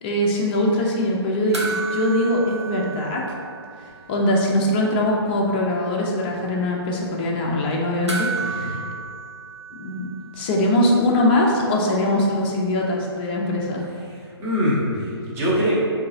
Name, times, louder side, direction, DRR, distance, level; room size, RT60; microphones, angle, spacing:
voice 1, 0.0-3.2 4.1-8.8 9.8-10.0 10.3-13.8, left 1 dB, 20° left, -2 dB, 0.4 m, -22 dB
sound 1, 1.5-4.2 4.5-4.6 8.1-10.7 12.8-12.9, right 4 dB, 85° right, 0.6 m, -32 dB
voice 2, 8.4-8.7 14.1-15.7, equal, 15° right, -7 dB, 0.6 m, -24 dB
3.7 x 2.5 x 2.6 m, 2.3 s
figure-of-eight pair, 130°, 14 cm